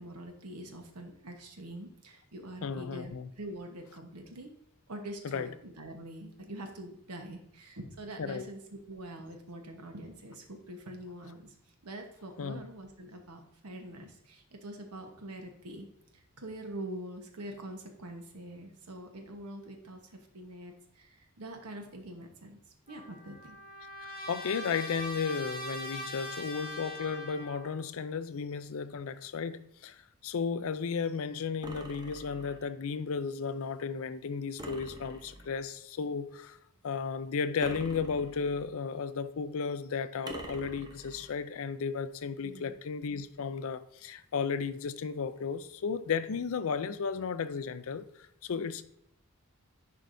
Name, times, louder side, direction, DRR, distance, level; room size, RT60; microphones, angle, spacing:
voice 1, 0.0-4.5 4.9-11.5 11.8-15.9 16.1-22.6 22.9-23.6 42.4-42.7, right 1 dB, 85° right, 1.1 m, -44 dB
voice 2, 2.6-3.3 5.2-5.5 8.2-8.4 12.4-12.6 24.0-30.0 30.2-36.6 36.8-48.0 48.4-48.8, left 5 dB, 65° left, 0.5 m, -34 dB
Trumpet, 22.9-27.8, equal, 45° left, 1.9 m, -42 dB
sound 1, 31.6-32.7 34.6-35.6 37.6-38.7 40.3-41.3, right 1 dB, 20° right, 0.7 m, -45 dB
10.5 x 4.7 x 2.6 m
head